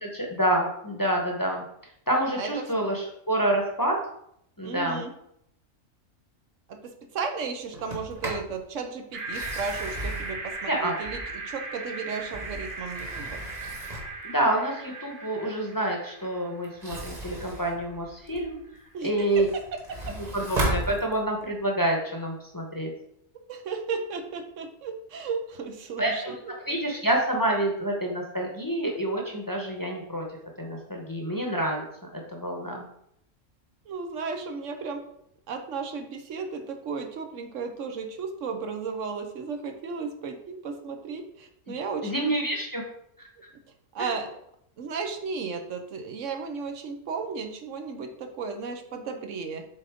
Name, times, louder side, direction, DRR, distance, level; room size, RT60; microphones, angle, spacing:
voice 1, 0.0-1.6 2.1-4.0 4.6-5.0 10.7-10.9 14.2-18.6 19.0-19.5 20.1-22.9 26.0-26.3 26.7-30.2 30.6-31.8 32.1-32.8 41.7-41.8 42.0-42.8 43.2-43.3 44.0-44.1, right 1 dB, 20° left, 0 dB, 0.8 m, -27 dB
voice 2, 2.4-2.7 4.6-5.1 6.7-13.4 18.9-20.2 23.5-26.5 33.9-35.0 35.5-42.3 43.9-44.3 44.8-49.7, right 5 dB, 75° right, 6 dB, 1.1 m, -34 dB
Sliding door, 7.7-8.5 9.2-11.5 12.1-14.2 16.6-18.6 19.0-21.5, right 1 dB, 35° right, 1.3 m, -35 dB
sound 1, 9.1-17.3, right 3 dB, 50° right, 1.4 m, -38 dB
7.5 x 3.8 x 3.5 m, 0.73 s
omnidirectional pair, 1.3 m